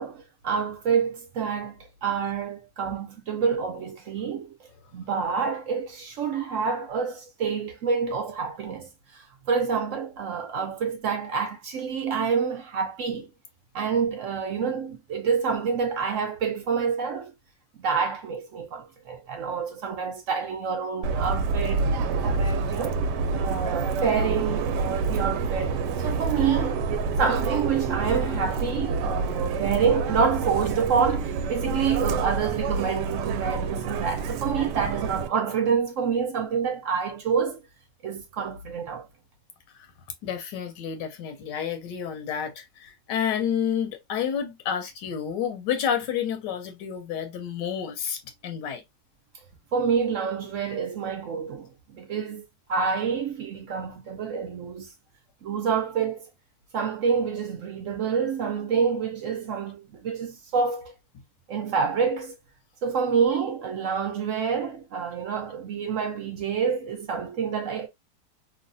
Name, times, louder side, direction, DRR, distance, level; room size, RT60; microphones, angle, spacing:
voice 1, 0.0-1.7 2.0-4.5 4.9-13.3 13.7-17.3 17.8-21.9 22.2-23.0 23.3-26.9 27.2-37.6 38.0-39.1 49.7-52.4 52.7-54.9 55.4-56.3 56.7-60.9 61.5-62.3 62.8-67.9, right 6 dB, 60° right, 0.8 m, -27 dB
Subway metro underground, 21.0-35.3, right 4 dB, 80° right, 1.2 m, -27 dB
voice 2, 40.2-48.2 48.4-48.8, left 8 dB, 80° left, 1.3 m, -29 dB
3.1 x 2.2 x 2.5 m
omnidirectional pair, 1.8 m